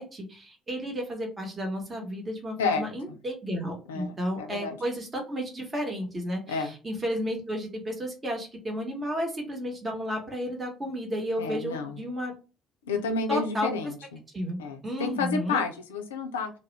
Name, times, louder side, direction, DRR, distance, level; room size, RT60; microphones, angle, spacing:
voice 1, 0.0-12.3 13.0-13.7 14.3-15.6, equal, 25° right, 1 dB, 0.9 m, -32 dB
voice 2, 2.6-3.2 3.9-4.8 6.5-6.7 11.4-12.0 12.8-14.2 14.6-16.5, left 4 dB, 75° left, 5 dB, 0.3 m, -30 dB
2.3 x 2.0 x 3.1 m, 0.34 s
figure-of-eight pair, 50°, 0 cm